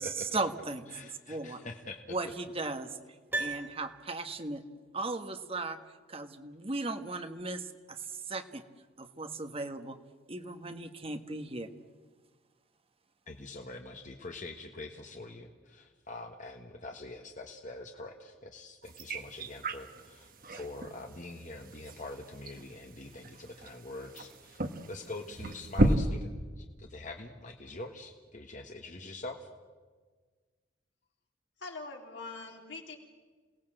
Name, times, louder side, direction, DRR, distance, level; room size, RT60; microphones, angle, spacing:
voice 1, 0.0-0.8 1.3-1.6 2.1-2.9 3.4-4.6 4.9-5.8 6.1-8.6 9.0-10.0 10.3-11.7, right 3 dB, 30° right, 8 dB, 1.4 m, -37 dB
voice 2, 0.9-2.0 13.3-24.6 24.9-29.5, left 2 dB, 45° left, 3 dB, 1.5 m, -44 dB
Piano, 3.3-4.6 4.8-4.9, right 2 dB, 10° right, 3.0 m, -37 dB
sound 1, 18.8-26.0, right 1 dB, 50° right, 1.5 m, -34 dB
voice 3, 31.6-32.9, left 3 dB, 70° left, 1 dB, 3.7 m, -43 dB
28.0 x 18.0 x 7.8 m, 1.4 s
head